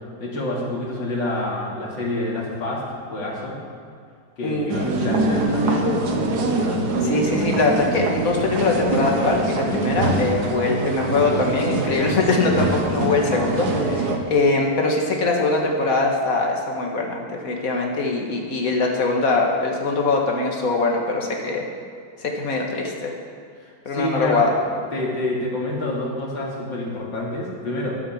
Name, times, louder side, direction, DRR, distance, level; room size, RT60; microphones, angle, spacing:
voice 1, 0.2-2.8 3.1-3.6 4.4-6.0 23.6-24.5 24.9-27.9, left 1 dB, 90° left, -3 dB, 3.1 m, -27 dB
voice 2, 4.4-4.8 7.0-21.7 22.2-23.1 23.9-24.5, left 3 dB, 50° left, 0 dB, 2.0 m, -22 dB
sound 1, 4.7-14.2, right 2 dB, 60° right, 1.7 m, -23 dB
12.0 x 8.6 x 7.3 m, 2.2 s
omnidirectional pair, 2.0 m